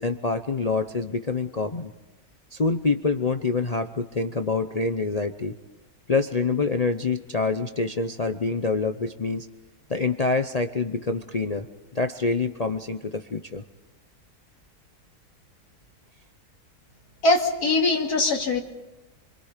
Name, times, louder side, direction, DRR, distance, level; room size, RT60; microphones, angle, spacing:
voice 1, 0.0-1.9 2.5-5.5 6.1-9.5 9.9-11.7 11.9-13.6, left 4 dB, 35° left, 7 dB, 0.7 m, -26 dB
voice 2, 17.2-18.6, left 2 dB, 80° left, 1 dB, 3.0 m, -21 dB
28.5 x 23.0 x 5.1 m, 1.1 s
omnidirectional pair, 1.6 m